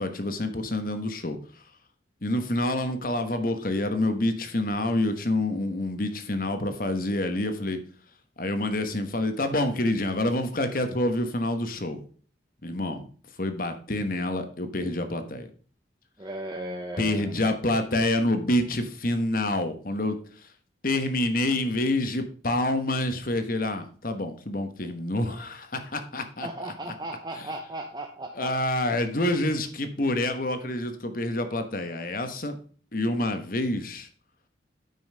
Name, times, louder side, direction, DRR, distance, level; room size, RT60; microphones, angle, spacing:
voice 1, 0.0-1.6 2.2-7.8 8.4-12.0 12.6-13.1 13.4-15.5 17.0-20.5 20.8-26.5 27.4-27.5 28.3-32.5 32.9-34.1, left 1 dB, 50° left, 8 dB, 1.2 m, -27 dB
voice 2, 16.2-17.4 26.4-28.6, right 1 dB, 20° right, 3 dB, 0.7 m, -36 dB
9.4 x 5.6 x 5.5 m, 0.43 s
head